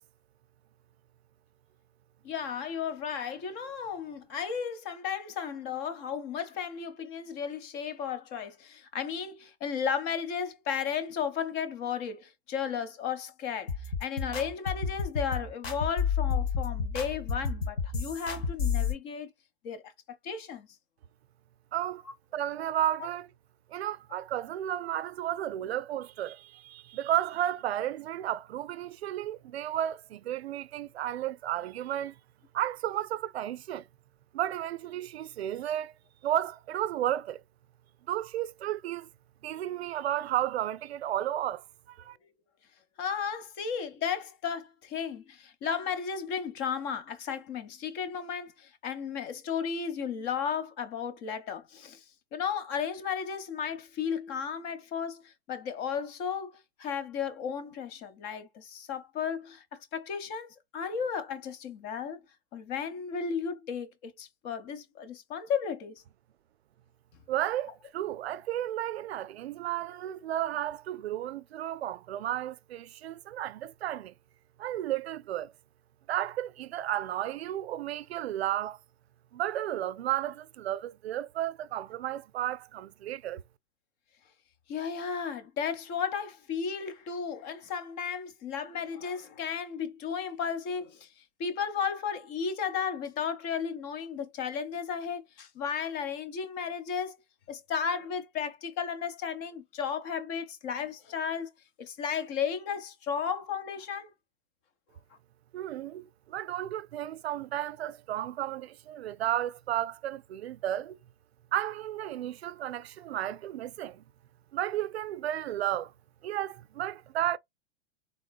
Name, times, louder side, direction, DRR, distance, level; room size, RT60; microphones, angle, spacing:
voice 1, 2.2-13.7 14.0-19.3 19.6-19.9 20.2-20.7 23.0-23.1 43.0-52.0 52.3-62.2 62.5-65.9 84.7-91.1 91.4-97.2 97.5-101.5 101.8-104.1, left 7 dB, 35° left, 0.8 m, -34 dB
sound 1, 13.7-18.9, left 6 dB, 65° left, 1.7 m, -30 dB
voice 2, 21.7-22.0 22.3-23.3 23.7-32.2 32.5-33.8 34.3-35.9 36.2-37.4 38.1-39.1 39.4-42.2 67.3-74.1 74.6-75.5 76.1-78.8 79.3-83.4 105.5-111.0 111.5-114.0 114.5-115.9 116.2-117.4, right 12 dB, 70° right, 0.5 m, -33 dB
3.7 x 3.6 x 2.2 m
hypercardioid pair, 125°, 32 cm